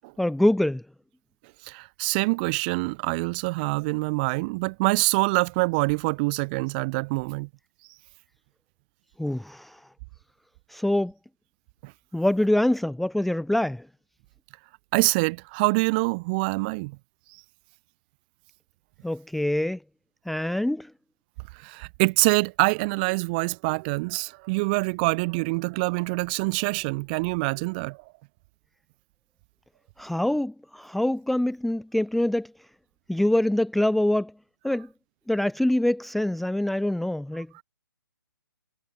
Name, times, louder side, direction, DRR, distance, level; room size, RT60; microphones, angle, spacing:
voice 1, 0.2-0.8 9.2-9.8 10.7-11.1 12.1-13.8 19.0-19.8 20.3-20.9 30.0-32.5 33.1-34.3 34.6-34.9 35.3-37.5, left 1 dB, ahead, 0.8 m, -24 dB
voice 2, 1.6-7.5 11.8-11.9 14.9-17.0 21.6-28.0 37.5-37.6, right 27 dB, 25° right, 1.3 m, -25 dB
figure-of-eight pair, 140°, 12 cm